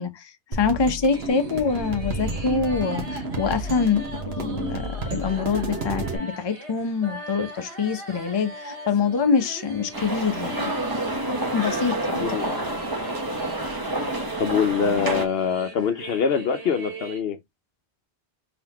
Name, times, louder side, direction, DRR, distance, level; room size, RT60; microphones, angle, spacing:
voice 1, 0.0-10.7 11.5-12.5, left 5 dB, 30° left, 0.6 m, -25 dB
sound 1, 0.5-6.2, right 2 dB, 65° right, 1.4 m, -31 dB
sound 2, 1.1-17.2, right 1 dB, 85° right, 2.4 m, -41 dB
sound 3, 9.9-15.3, right 1 dB, 20° right, 0.9 m, -28 dB
voice 2, 12.2-12.5 14.4-17.4, left 7 dB, 65° left, 0.8 m, -24 dB
3.9 x 3.9 x 2.9 m
omnidirectional pair, 1.1 m